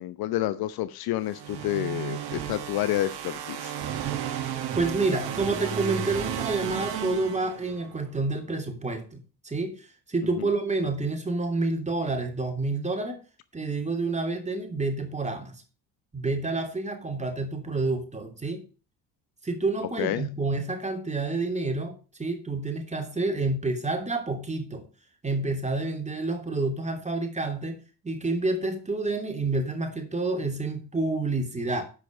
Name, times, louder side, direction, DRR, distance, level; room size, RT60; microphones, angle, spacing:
voice 1, 0.0-3.7 10.4-10.5 20.0-20.3, left 14 dB, 50° left, 14 dB, 0.9 m, -29 dB
sound 1, 1.3-8.0, right 9 dB, 50° right, 1.9 m, -33 dB
voice 2, 4.7-13.2 13.5-15.6 16.1-18.6 19.4-24.8 25.2-31.8, right 3 dB, 15° right, 4 dB, 3.1 m, -29 dB
10.5 x 7.6 x 5.3 m, 0.35 s
figure-of-eight pair, 55°, 48 cm